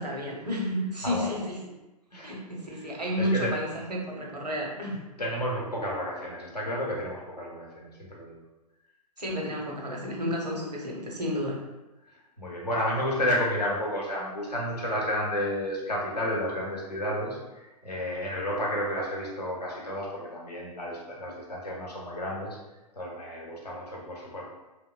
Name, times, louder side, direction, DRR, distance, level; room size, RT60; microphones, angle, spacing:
voice 1, 0.0-1.6 2.2-5.0 9.2-11.6, equal, 85° right, -2 dB, 0.7 m, -31 dB
voice 2, 1.0-1.4 2.1-2.3 2.7-3.5 5.2-8.4 12.4-22.6 22.9-24.4, equal, 80° left, -4 dB, 0.8 m, -31 dB
2.9 x 2.1 x 2.3 m, 1.1 s
figure-of-eight pair, 110°, 21 cm